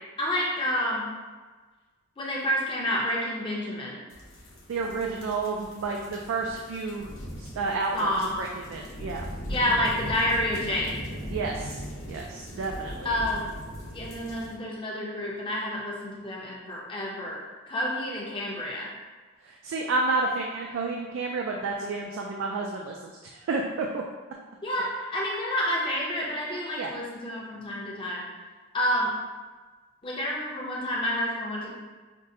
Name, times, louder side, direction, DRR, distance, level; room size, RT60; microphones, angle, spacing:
voice 1, 0.2-1.1 2.2-4.0 7.9-8.4 9.5-11.0 13.0-13.5 13.9-17.4 17.7-18.9 24.6-28.2 28.7-29.1 30.0-31.7, left 1 dB, 25° left, -4 dB, 0.6 m, -29 dB
sound 1, 4.1-14.5, equal, 75° left, 0.8 m, -39 dB
voice 2, 4.7-7.1 7.4-9.6 11.3-11.8 12.1-13.1 19.4-24.0 26.8-26.9, right 3 dB, 75° right, 1 dB, 0.3 m, -31 dB
5.2 x 2.1 x 2.6 m, 1.3 s
head